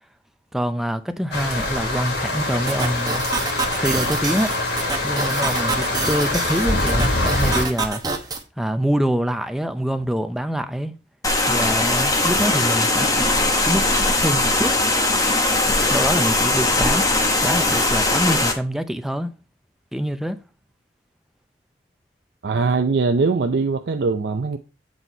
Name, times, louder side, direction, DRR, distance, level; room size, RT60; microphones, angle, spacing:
voice 1, 0.5-3.3 3.8-4.5 5.0-8.0 8.6-10.9 11.5-14.8 15.9-17.1 17.4-19.3 19.9-20.4, equal, ahead, 0.5 m, -25 dB
sound 1, 1.3-7.7, left 2 dB, 70° left, 2.1 m, -24 dB
sound 2, 2.7-8.4, right 4 dB, 20° right, 0.9 m, -28 dB
sound 3, 11.2-18.5, left 2 dB, 20° left, 1.0 m, -20 dB
voice 2, 22.4-24.6, right 4 dB, 70° right, 0.5 m, -21 dB
7.9 x 4.1 x 4.5 m
head